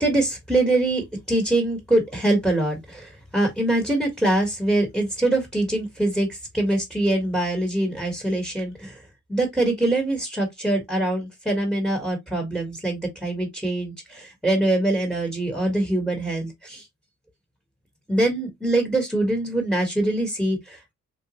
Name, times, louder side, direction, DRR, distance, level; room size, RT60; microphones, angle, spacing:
voice 1, 0.0-9.0 9.3-16.9 18.1-20.9, right 1 dB, 5° right, 1.2 m, -24 dB
3.8 x 2.3 x 2.9 m
cardioid pair, 110°, 31 cm